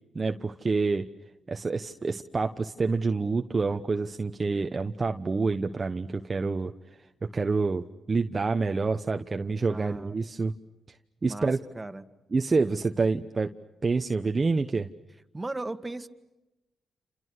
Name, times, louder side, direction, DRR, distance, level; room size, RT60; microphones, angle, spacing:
voice 1, 0.1-1.1 1.5-6.7 7.2-10.5 11.2-11.6 12.3-13.5 13.8-14.9, right 4 dB, 35° right, 6 dB, 1.1 m, -27 dB
voice 2, 9.7-10.2 11.2-11.5 11.7-12.0 15.3-16.1, right 2 dB, 20° right, 8 dB, 2.0 m, -36 dB
29.5 x 28.0 x 6.5 m, 1.0 s
supercardioid pair, 55°, 0 cm